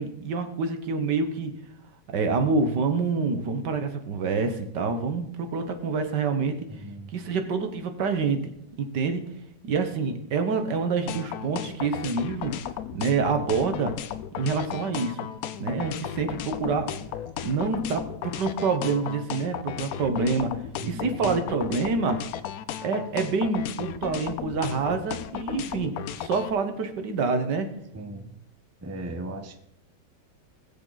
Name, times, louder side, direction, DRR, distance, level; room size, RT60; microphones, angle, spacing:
voice 1, 0.0-1.5 2.1-6.5 7.1-8.4 8.8-9.2 9.6-12.5 12.9-13.9 14.4-15.2 15.6-16.9 17.4-20.5 20.8-22.2 22.8-25.9 26.2-27.7, right 4 dB, 80° right, 7 dB, 1.9 m, -27 dB
voice 2, 6.8-7.1 20.8-21.4 27.9-28.3 28.8-29.6, right 2 dB, 10° right, 6 dB, 0.7 m, -37 dB
sound 1, 11.1-26.5, left 10 dB, 65° left, 1.0 m, -35 dB
19.5 x 7.4 x 4.0 m, 0.74 s
omnidirectional pair, 1.8 m